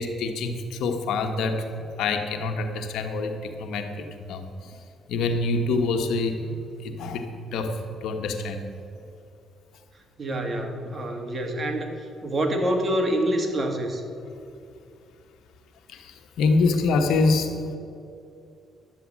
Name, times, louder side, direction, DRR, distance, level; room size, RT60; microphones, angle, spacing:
voice 1, 0.0-1.7 2.0-4.7 5.1-8.7 15.9-17.8, left 3 dB, 85° left, 5 dB, 1.4 m, -26 dB
voice 2, 10.2-14.1, right 1 dB, 35° right, 3 dB, 2.0 m, -26 dB
11.5 x 7.9 x 8.7 m, 2.6 s
cardioid pair, 90°, 0 cm